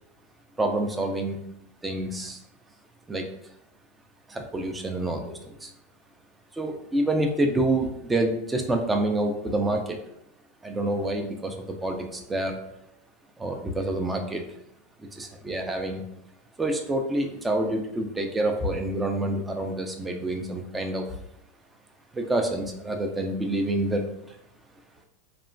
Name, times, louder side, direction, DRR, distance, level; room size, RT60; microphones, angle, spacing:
voice 1, 0.6-1.4 1.8-2.4 3.1-3.3 4.3-5.7 6.5-10.0 10.6-12.6 13.4-14.4 15.1-16.0 16.6-21.1 22.1-24.1, right 1 dB, 10° right, 3 dB, 0.3 m, -27 dB
3.0 x 2.1 x 2.5 m, 0.81 s
supercardioid pair, 145°, 0 cm